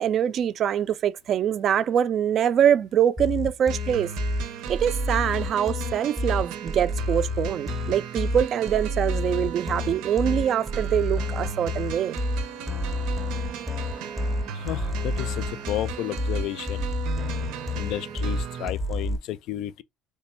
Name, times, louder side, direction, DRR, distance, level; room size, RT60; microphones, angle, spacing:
voice 1, 0.0-4.1 4.7-12.2, right 9 dB, 40° right, 0.3 m, -24 dB
sound 1, 3.2-19.2, left 1 dB, 10° right, 0.6 m, -30 dB
sound 2, 3.7-18.7, right 7 dB, 90° right, 0.6 m, -37 dB
voice 2, 14.5-16.9 17.7-19.8, left 13 dB, 65° left, 0.4 m, -32 dB
3.3 x 2.1 x 4.3 m
cardioid pair, 155°, 0 cm